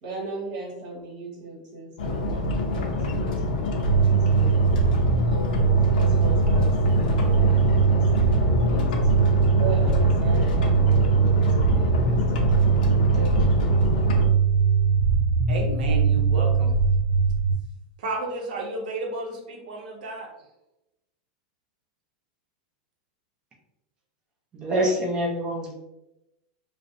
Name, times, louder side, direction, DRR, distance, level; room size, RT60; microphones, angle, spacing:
voice 1, 0.0-4.6 5.3-12.6 12.8-13.7 14.6-14.8, right 2 dB, 55° right, -4 dB, 1.2 m, -38 dB
sound 1, 2.0-14.3, left 2 dB, 85° left, 0.4 m, -26 dB
sound 2, 3.8-17.5, right 5 dB, 20° left, 1.0 m, -21 dB
voice 2, 15.5-16.7 18.0-20.3, right 2 dB, 85° right, 1 dB, 0.6 m, -32 dB
voice 3, 24.5-25.7, equal, 20° right, -1 dB, 0.5 m, -25 dB
2.5 x 2.0 x 2.5 m, 0.90 s
supercardioid pair, 165°, 4 cm